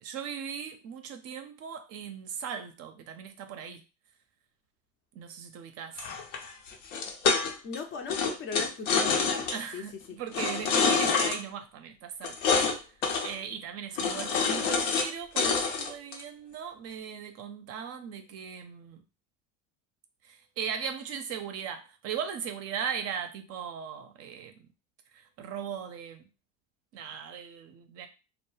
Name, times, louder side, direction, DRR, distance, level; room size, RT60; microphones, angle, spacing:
voice 1, 0.0-3.8 5.2-6.0 9.5-12.4 13.2-19.0 20.2-24.7 25.1-26.2 26.9-28.1, right 7 dB, 45° right, 0.5 m, -38 dB
sound 1, 6.0-7.8 8.1-9.6 10.3-11.4 12.2-12.8 13.0-13.3 14.0-15.1 15.4-16.2, left 5 dB, 80° left, 0.7 m, -27 dB
voice 2, 7.6-9.5 9.7-10.2, left 5 dB, 35° left, 0.4 m, -37 dB
2.2 x 2.0 x 3.1 m
hypercardioid pair, 90°, 37 cm